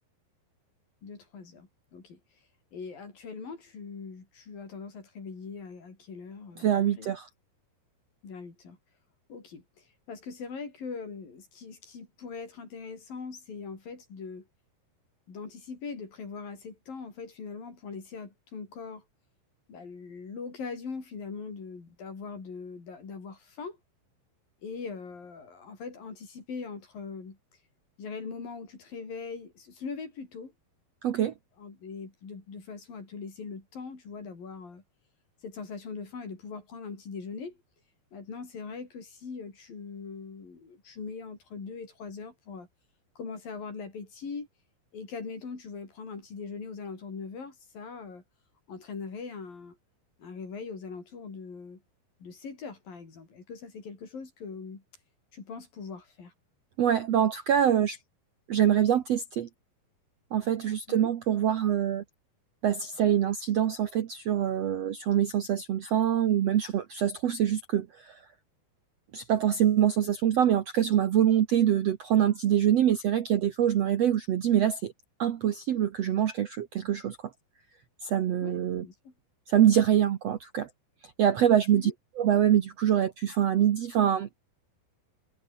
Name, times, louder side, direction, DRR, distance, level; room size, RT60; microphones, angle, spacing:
voice 1, 1.0-2.2 2.7-6.7 7.0-7.1 8.2-8.8 9.3-14.5 15.3-19.0 19.7-23.8 24.6-27.4 28.0-30.5 31.6-34.8 35.4-37.6 38.1-42.7 43.2-44.5 44.9-48.2 48.7-49.8 50.2-51.8 52.2-54.8 55.3-56.3 60.9-61.1 78.4-79.1 81.7-81.9, left 5 dB, 65° left, 7.4 m, -41 dB
voice 2, 6.6-7.3 31.0-31.3 56.8-58.0 58.5-59.5 60.3-62.0 62.6-68.2 69.1-74.9 75.2-77.2 78.0-78.8 79.5-80.7 81.2-81.9 82.2-84.3, right 10 dB, 65° right, 1.7 m, -25 dB
omnidirectional pair, 4.4 m